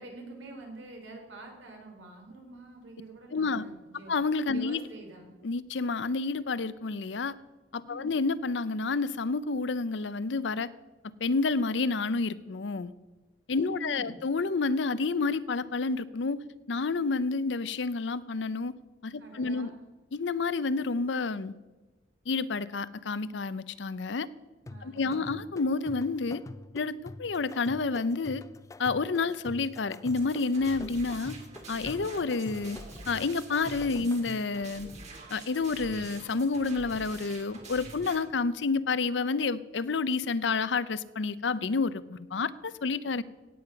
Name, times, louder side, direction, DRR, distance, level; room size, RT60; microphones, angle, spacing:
voice 1, 0.0-4.1 4.5-5.3 7.9-8.2 13.5-14.1 19.2-19.8 24.6-25.4, right 2 dB, 85° right, 2 dB, 3.8 m, -46 dB
voice 2, 3.3-3.6 4.1-4.8 5.4-7.4 7.7-10.7 11.2-12.9 13.5-16.4 16.7-18.7 19.0-19.7 20.1-21.5 22.3-24.3 24.8-26.4 26.7-28.4 28.8-31.4 31.7-32.8 33.1-34.9 35.3-43.2, left 4 dB, 70° left, 17 dB, 0.6 m, -29 dB
sound 1, 24.7-34.6, left 2 dB, 15° left, 0.3 m, -46 dB
sound 2, 30.1-38.2, right 2 dB, 40° right, 2.7 m, -46 dB
17.0 x 8.6 x 5.8 m, 1.2 s
head